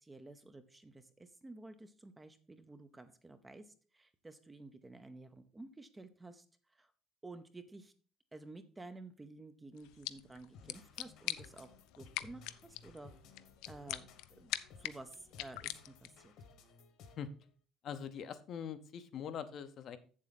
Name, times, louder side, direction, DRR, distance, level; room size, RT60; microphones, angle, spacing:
voice 1, 0.0-6.9 7.2-7.9 8.3-13.1 13.7-14.1 14.4-14.5 14.8-16.3, right 2 dB, 10° right, 9 dB, 0.6 m, -52 dB
sound 1, 9.8-16.3, left 16 dB, 85° left, 0.5 m, -45 dB
sound 2, 10.5-17.4, left 4 dB, 55° left, 1.3 m, -58 dB
voice 2, 17.8-20.0, left 8 dB, 40° left, 11 dB, 0.7 m, -43 dB
8.0 x 7.4 x 4.0 m, 0.40 s
cardioid pair, 175°, 0 cm